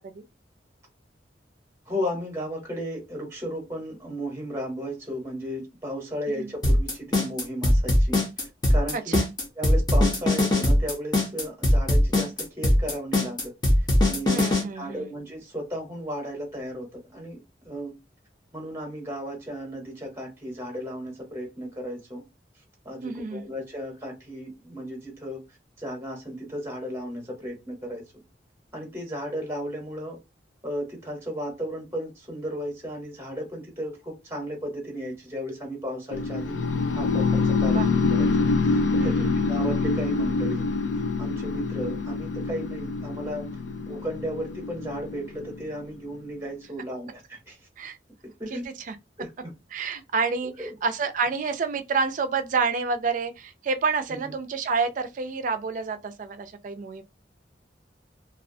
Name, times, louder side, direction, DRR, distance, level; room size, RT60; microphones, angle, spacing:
voice 1, 1.9-9.2 9.6-13.5 13.8-18.0 18.5-22.2 22.8-28.0 28.7-30.2 30.6-37.8 38.1-38.3 38.6-39.1 39.5-40.7 41.2-43.5 43.9-47.6 48.4-48.7 49.2-49.5 50.6-50.7 54.1-54.3, equal, 15° right, 0.8 m, -35 dB
sound 1, 6.6-14.6, left 1 dB, 25° left, 0.6 m, -20 dB
voice 2, 8.9-9.3 14.3-15.1 23.0-23.4 37.6-37.9 39.0-39.5 47.8-48.0 48.5-48.6 48.9-49.0 49.7-57.0, right 4 dB, 45° right, 0.4 m, -28 dB
sound 2, 36.1-46.1, left 4 dB, 80° left, 0.4 m, -26 dB
2.3 x 2.2 x 2.5 m
head